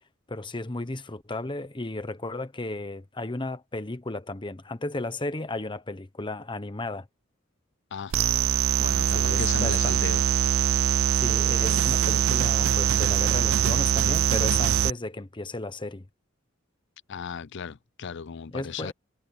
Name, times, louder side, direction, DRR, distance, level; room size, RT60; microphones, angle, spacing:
voice 1, 0.3-7.1 9.1-10.0 11.1-16.0 18.5-18.9, left 2 dB, 25° left, 1.1 m, -34 dB
sound 1, 8.1-14.9, right 9 dB, 75° right, 0.4 m, -23 dB
voice 2, 8.8-10.2 17.1-18.9, left 6 dB, 60° left, 0.5 m, -35 dB
head